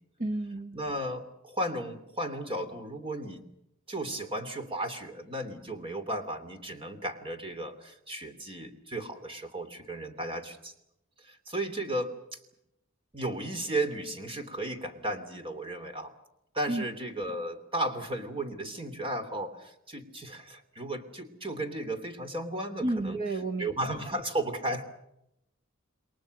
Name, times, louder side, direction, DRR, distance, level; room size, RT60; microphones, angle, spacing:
voice 1, 0.2-0.8 16.7-16.8 22.8-23.7 24.1-24.2, right 2 dB, 45° right, 8 dB, 1.3 m, -31 dB
voice 2, 0.7-3.4 3.9-10.7 11.2-12.4 13.1-16.1 16.5-23.2 23.6-24.8, right 1 dB, 25° right, 8 dB, 3.1 m, -34 dB
29.0 x 22.5 x 6.6 m, 0.81 s
head